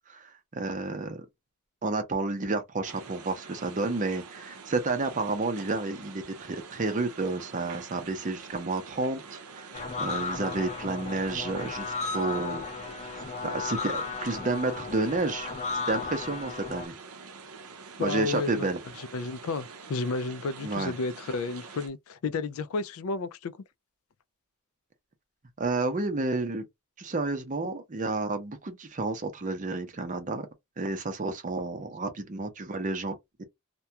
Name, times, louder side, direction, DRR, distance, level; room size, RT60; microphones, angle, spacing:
voice 1, 0.1-1.2 1.8-9.7 10.0-12.6 13.0-15.5 15.9-16.9 18.0-18.8 20.6-20.9 25.6-26.7 27.0-30.5 30.8-33.4, right 3 dB, 35° right, 0.6 m, -31 dB
sound 1, 2.8-21.9, right 5 dB, 80° right, 0.6 m, -46 dB
sound 2, 9.7-16.9, left 4 dB, 30° left, 0.7 m, -35 dB
voice 2, 18.0-18.7 19.1-23.6, left 3 dB, 70° left, 0.4 m, -32 dB
2.3 x 2.2 x 2.7 m
head